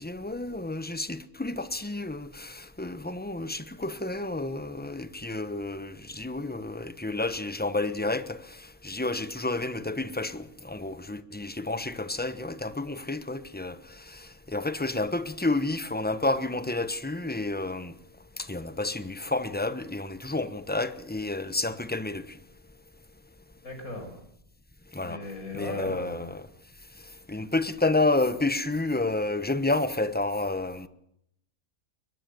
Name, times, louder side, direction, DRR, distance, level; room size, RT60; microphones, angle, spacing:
voice 1, 0.0-17.9 18.4-22.4 24.9-25.2 25.5-26.5 27.3-30.9, left 2 dB, 10° left, 0.9 m, -30 dB
voice 2, 23.6-24.1 25.0-26.2, left 1 dB, 70° left, 6.2 m, -36 dB
22.5 x 21.0 x 6.9 m
omnidirectional pair, 1.5 m